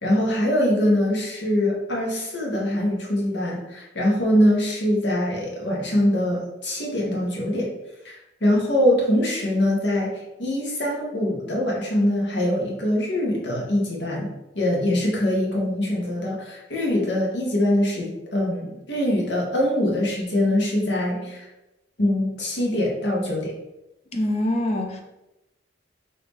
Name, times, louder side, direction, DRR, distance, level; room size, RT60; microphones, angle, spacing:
voice 1, 0.0-7.7 8.0-21.5 22.0-23.5, left 1 dB, 80° left, -2 dB, 1.0 m, -23 dB
voice 2, 24.1-25.0, left 1 dB, 35° left, 3 dB, 0.5 m, -24 dB
3.1 x 2.8 x 3.4 m, 0.94 s
head